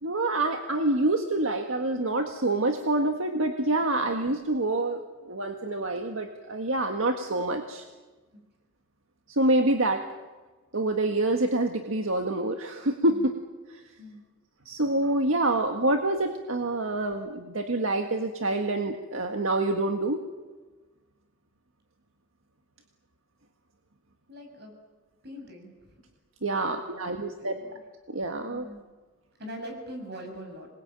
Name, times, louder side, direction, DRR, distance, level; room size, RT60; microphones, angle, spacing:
voice 1, 0.0-5.0 5.3-7.8 9.3-10.1 10.7-13.3 14.6-20.2 26.4-27.6 28.1-28.7, right 2 dB, 80° right, 4 dB, 1.7 m, -26 dB
voice 2, 24.3-24.7 25.2-25.9 26.5-27.7 28.5-28.9 29.4-30.7, equal, 55° right, 4 dB, 7.2 m, -43 dB
26.5 x 21.5 x 9.1 m, 1.3 s
head